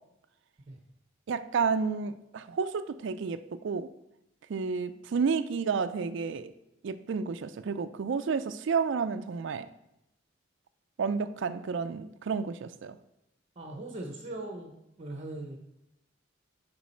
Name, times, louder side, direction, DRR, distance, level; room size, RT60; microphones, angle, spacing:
voice 1, 1.3-3.4 3.6-3.9 4.5-6.5 6.8-9.7 11.0-13.0, right 5 dB, 70° right, 11 dB, 0.4 m, -31 dB
voice 2, 13.6-15.6, right 2 dB, 35° right, 2 dB, 0.8 m, -40 dB
7.1 x 5.2 x 4.3 m, 0.85 s
head